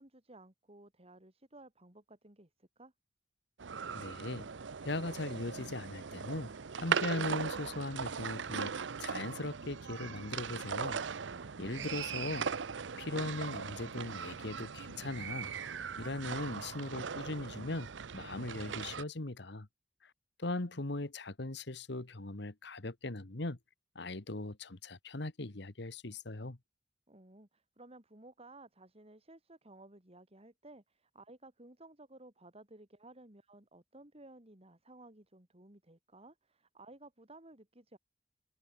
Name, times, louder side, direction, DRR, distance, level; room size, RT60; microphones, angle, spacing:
voice 1, 0.0-2.9 11.3-12.2 27.1-38.0, right 2 dB, 35° right, 3.7 m, -56 dB
sound 1, 3.6-19.0, right 6 dB, 80° right, 0.7 m, -39 dB
voice 2, 3.9-4.5 4.8-8.7 9.0-11.0 11.6-12.4 13.0-15.5 16.0-19.7 20.4-23.6 23.9-26.6, left 2 dB, 65° left, 1.5 m, -39 dB
head